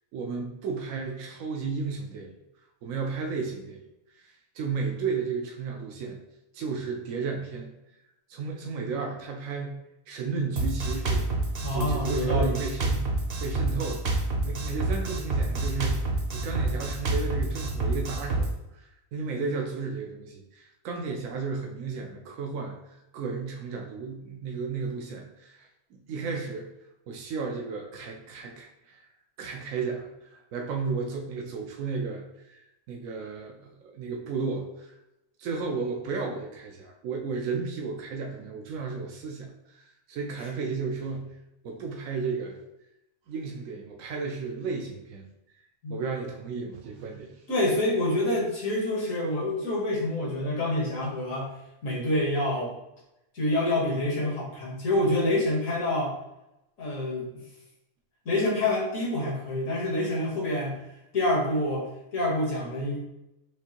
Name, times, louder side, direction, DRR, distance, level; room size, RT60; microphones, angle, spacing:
voice 1, 0.1-2.3 2.8-3.8 4.2-6.2 6.5-7.7 8.3-9.8 10.1-11.3 11.7-14.2 14.4-26.7 27.1-29.1 29.4-34.9 35.4-41.4 41.6-42.6 43.3-45.2 45.9-47.4, right 4 dB, 80° right, 1 dB, 1.0 m, -33 dB
Drum kit, 10.6-18.5, right 2 dB, 50° right, 0.9 m, -28 dB
voice 2, 11.6-12.6 45.8-46.0 47.5-51.5 51.8-52.7 53.3-56.1 56.8-57.4 58.3-60.8 61.1-63.0, left 1 dB, 80° left, -4 dB, 1.8 m, -27 dB
6.1 x 2.5 x 2.9 m, 0.88 s
omnidirectional pair, 1.4 m